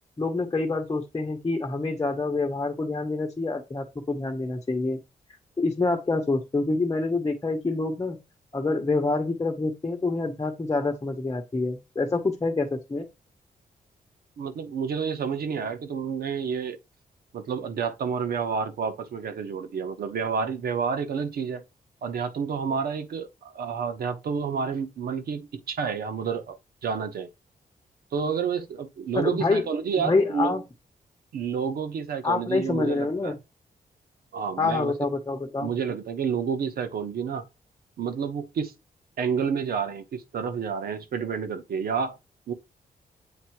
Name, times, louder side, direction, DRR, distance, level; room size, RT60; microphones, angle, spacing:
voice 1, 0.2-5.0 5.6-8.2 8.5-13.1 29.1-29.6 30.0-30.6 32.2-33.4 34.6-35.7, left 3 dB, 25° left, 1.0 m, -26 dB
voice 2, 14.4-16.8 17.3-21.6 22.0-27.3 28.1-30.6 31.3-33.3 34.3-34.9 35.6-37.4 38.0-38.7 39.2-42.2 42.5-42.6, right 6 dB, 85° right, 1.0 m, -29 dB
7.9 x 2.7 x 4.6 m
wide cardioid pair, 125°, 15 cm